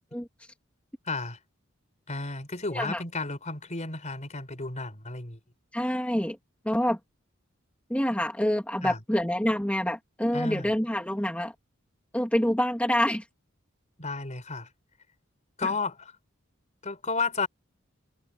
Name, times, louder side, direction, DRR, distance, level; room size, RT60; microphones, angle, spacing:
voice 1, 1.1-1.4 2.1-5.4 8.8-9.0 10.3-10.7 14.0-14.7 15.6-16.1 16.8-17.5, left 3 dB, 35° left, 4.6 m, -32 dB
voice 2, 2.7-3.0 5.7-6.4 6.6-7.0 7.9-11.5 12.1-13.3 15.6-15.7, equal, 5° left, 2.6 m, -27 dB
head